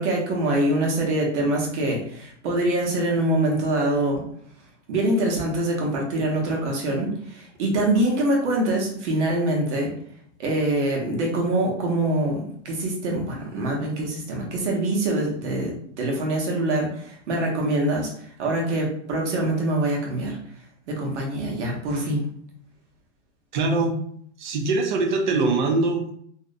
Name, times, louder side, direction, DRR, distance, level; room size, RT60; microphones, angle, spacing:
voice 1, 0.0-4.2 4.9-9.9 10.4-20.4 20.9-22.3, right 1 dB, 80° right, -1 dB, 1.0 m, -24 dB
voice 2, 23.5-24.0 24.4-26.1, right 3 dB, 45° right, 4 dB, 0.4 m, -22 dB
2.6 x 2.0 x 2.5 m, 0.64 s
supercardioid pair, 175°, 35 cm